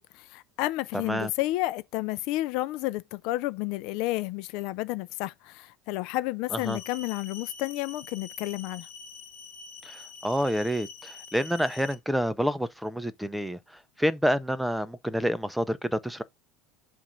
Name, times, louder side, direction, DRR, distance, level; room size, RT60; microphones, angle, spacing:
voice 1, 0.0-8.9, left 17 dB, 65° left, 0.4 m, -31 dB
sound 1, 6.5-11.9, left 5 dB, 45° left, 1.7 m, -45 dB
voice 2, 9.8-13.6 14.0-16.2, equal, ahead, 0.5 m, -28 dB
7.3 x 2.5 x 5.3 m
cardioid pair, 145°, 0 cm